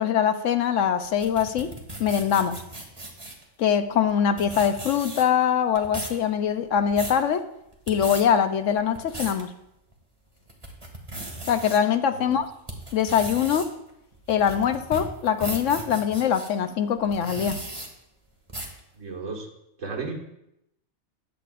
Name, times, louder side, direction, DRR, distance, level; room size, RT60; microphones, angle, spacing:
voice 1, 0.0-1.7 2.0-2.6 3.6-7.5 7.9-9.5 11.5-12.5 12.9-13.7 14.3-17.6, left 8 dB, 70° left, 10 dB, 1.0 m, -23 dB
sound 1, 1.0-3.4 4.1-4.2 4.4-5.4 5.7-6.2 6.7-7.2 7.7-8.2 8.8-9.4 9.9-10.0 10.5-11.8 12.3-16.5 17.0-17.9 18.5-18.8, right 1 dB, 20° right, 1.8 m, -36 dB
voice 2, 19.0-19.5 19.8-20.2, right 4 dB, 65° right, -1 dB, 2.2 m, -33 dB
15.0 x 10.5 x 2.5 m, 0.82 s
omnidirectional pair, 1.4 m